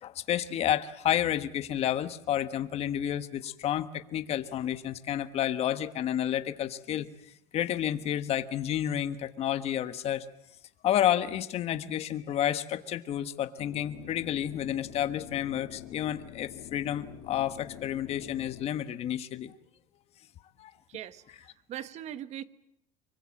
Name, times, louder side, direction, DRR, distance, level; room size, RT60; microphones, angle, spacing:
voice 1, 0.0-7.1 7.5-10.2 10.8-19.5 20.6-20.7, left 11 dB, 40° left, 11 dB, 1.4 m, -30 dB
sound 1, 13.6-18.7, left 12 dB, 70° left, 2.7 m, -47 dB
voice 2, 20.9-21.4 21.7-22.4, right 11 dB, 45° right, 13 dB, 1.4 m, -40 dB
25.5 x 23.5 x 7.7 m, 0.75 s
cardioid pair, 135°, 16 cm